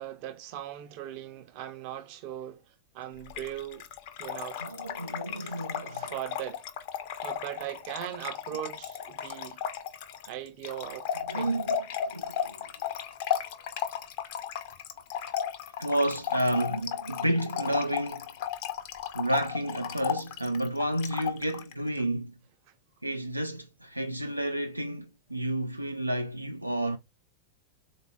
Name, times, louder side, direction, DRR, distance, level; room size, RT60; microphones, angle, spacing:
voice 1, 0.0-3.8 4.2-4.7 5.3-6.6 7.2-9.6 10.3-11.5, right 12 dB, 45° right, 0.7 m, -39 dB
Trickle dribble / Fill (with liquid), 3.3-21.7, left 9 dB, 50° left, 0.6 m, -35 dB
voice 2, 4.6-6.1 11.3-11.8 12.1-12.7 15.8-18.3 19.1-22.3 23.0-27.0, right 1 dB, 85° right, 0.4 m, -30 dB
4.0 x 2.5 x 4.5 m
figure-of-eight pair, 90°, 0 cm